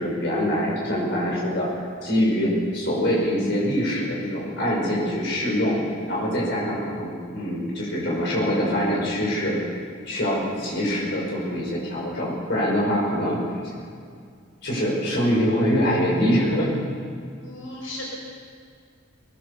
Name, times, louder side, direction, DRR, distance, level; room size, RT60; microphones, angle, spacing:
voice 1, 0.0-5.8 6.1-9.5 10.1-13.4 14.6-16.7, equal, 55° left, -3 dB, 5.7 m, -24 dB
voice 2, 17.4-18.1, left 2 dB, 75° left, -3 dB, 5.0 m, -35 dB
20.0 x 19.5 x 6.9 m, 2.2 s
head